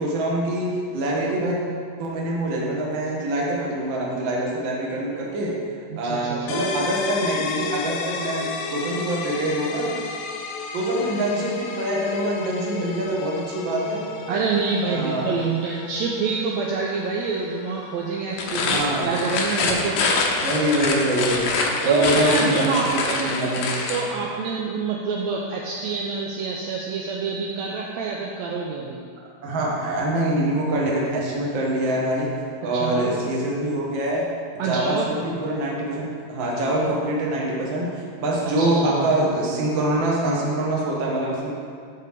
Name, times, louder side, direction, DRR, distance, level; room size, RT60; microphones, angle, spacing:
voice 1, 0.0-1.6 2.0-5.5 6.0-10.0 10.7-14.0 14.8-15.3 18.6-19.1 20.4-23.8 29.4-32.3 32.6-34.3 34.5-37.9 38.2-41.5, right 1 dB, 50° right, -3 dB, 1.5 m, -24 dB
voice 2, 5.9-6.6 14.3-20.0 20.4-20.5 21.9-23.5 23.9-29.0 32.6-33.1 34.6-35.1 38.6-39.1, right 4 dB, 80° right, -2 dB, 1.6 m, -26 dB
sound 1, 6.5-22.0, left 5 dB, 90° left, 2.3 m, -35 dB
sound 2, 18.3-24.1, left 3 dB, 70° left, 1.6 m, -25 dB
7.2 x 4.4 x 6.5 m, 2.2 s
omnidirectional pair, 3.7 m